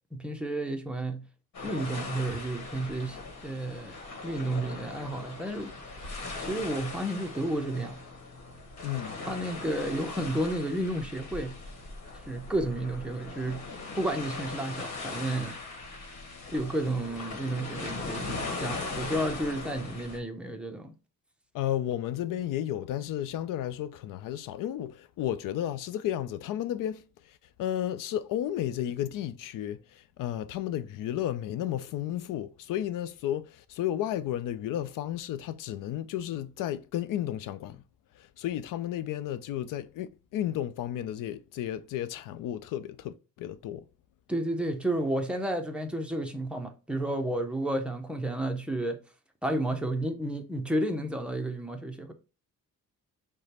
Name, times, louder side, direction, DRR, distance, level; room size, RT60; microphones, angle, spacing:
voice 1, 0.1-1.3 1.6-3.2 3.4-5.7 6.4-8.0 9.3-11.5 12.3-13.6 13.9-15.5 16.5-20.9 44.3-49.0 49.4-52.1, right 1 dB, 5° right, 0.6 m, -31 dB
sound 1, 1.5-20.2, left 3 dB, 55° left, 1.4 m, -39 dB
voice 2, 8.8-9.2 21.5-37.8 38.1-43.8, left 11 dB, 85° left, 0.5 m, -33 dB
4.9 x 2.2 x 4.2 m
cardioid pair, 140°, 32 cm